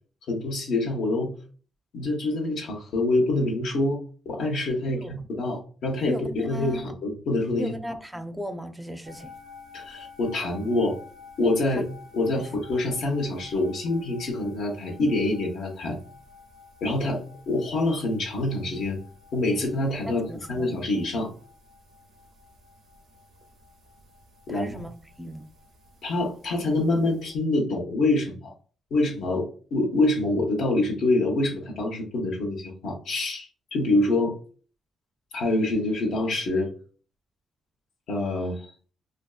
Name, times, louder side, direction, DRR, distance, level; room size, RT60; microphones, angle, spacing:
voice 1, 0.3-1.3 1.9-4.0 4.3-7.7 9.7-11.0 11.4-11.9 12.1-16.0 16.8-19.0 19.3-21.3 24.5-24.8 26.0-28.5 28.9-34.3 35.3-36.7 38.1-38.7, left 2 dB, 80° left, 0.8 m, -26 dB
voice 2, 6.1-6.8 7.6-9.3 11.7-11.8 12.4-12.5 20.1-20.7 24.5-25.5, equal, 5° right, 0.4 m, -36 dB
sound 1, 9.0-27.3, left 4 dB, 65° right, 0.4 m, -51 dB
2.6 x 2.3 x 2.3 m
cardioid pair, 105°, 0 cm